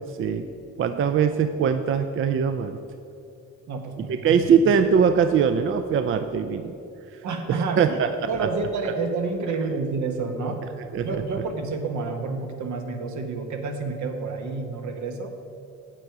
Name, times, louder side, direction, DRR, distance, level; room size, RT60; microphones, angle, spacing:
voice 1, 0.8-2.8 4.2-6.7 7.5-8.1 8.4-8.5 10.9-11.1, right 7 dB, 45° right, 8 dB, 0.4 m, -21 dB
voice 2, 3.7-4.4 7.2-8.0 8.3-10.6 11.0-15.3, right 4 dB, 70° right, 5 dB, 1.1 m, -29 dB
8.0 x 7.6 x 4.7 m, 2.6 s
cardioid pair, 90°, 30 cm